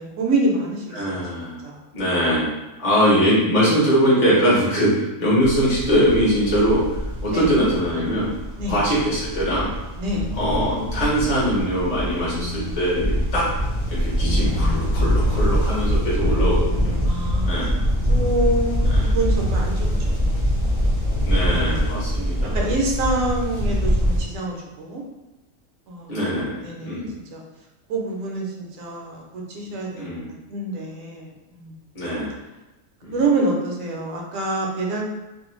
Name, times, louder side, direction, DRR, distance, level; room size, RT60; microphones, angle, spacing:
voice 1, 0.0-1.2 1.6-1.8 3.0-3.1 7.3-7.5 8.6-8.8 10.0-10.3 14.3-15.0 17.0-19.8 20.1-20.4 21.5-25.0 25.9-26.2 26.6-27.0 27.3-27.4 27.9-30.0 30.5-31.8 33.1-35.0, right 2 dB, 70° right, -1 dB, 0.9 m, -27 dB
voice 2, 0.9-1.6 1.9-8.3 8.7-9.7 10.4-13.5 14.0-16.9 17.5-17.7 18.9-19.2 21.2-22.7 26.1-27.1 29.9-30.3 31.9-32.3 33.0-33.2, equal, 40° left, -7 dB, 0.6 m, -22 dB
sound 1, 5.4-24.2, equal, 30° right, 0.6 m, -23 dB
sound 2, 10.2-11.2 12.2-13.2 14.2-15.2 16.2-17.2, left 4 dB, 60° left, 0.9 m, -33 dB
2.5 x 2.1 x 3.0 m, 1.0 s
omnidirectional pair, 1.5 m